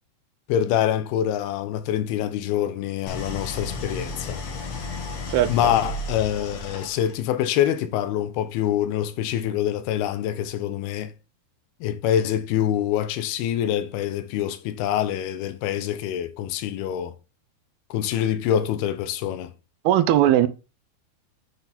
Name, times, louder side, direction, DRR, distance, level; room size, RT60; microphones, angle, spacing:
voice 1, 0.5-4.4 5.5-11.1 11.8-17.2 17.9-19.5, left 10 dB, 80° left, 2.4 m, -25 dB
Idling, 3.1-7.3, left 3 dB, 65° left, 1.6 m, -33 dB
voice 2, 19.8-20.5, right 12 dB, 80° right, 2.5 m, -18 dB
8.0 x 4.3 x 4.1 m
omnidirectional pair, 4.6 m